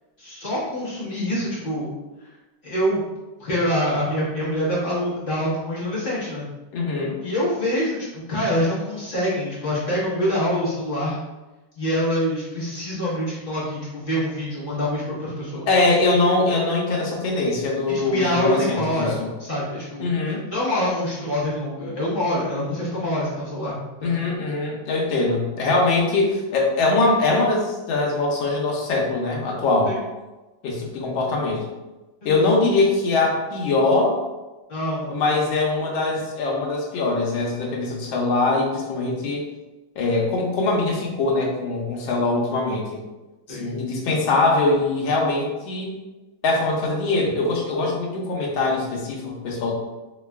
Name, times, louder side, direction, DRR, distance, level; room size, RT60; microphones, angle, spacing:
voice 1, 0.2-1.9 2.6-3.0 3.4-6.5 7.2-11.2 11.8-15.7 17.9-24.2 29.8-30.0 32.3-32.6 34.7-35.2 43.5-43.7, equal, 35° left, -9 dB, 1.1 m, -25 dB
voice 2, 6.7-7.2 15.7-19.3 20.0-20.4 24.0-29.9 30.6-31.6 32.2-34.2 35.1-39.4 40.0-43.0 43.5-46.0 46.4-49.7, left 3 dB, 75° left, -2 dB, 1.5 m, -22 dB
3.7 x 3.2 x 2.2 m, 1.1 s
omnidirectional pair, 2.3 m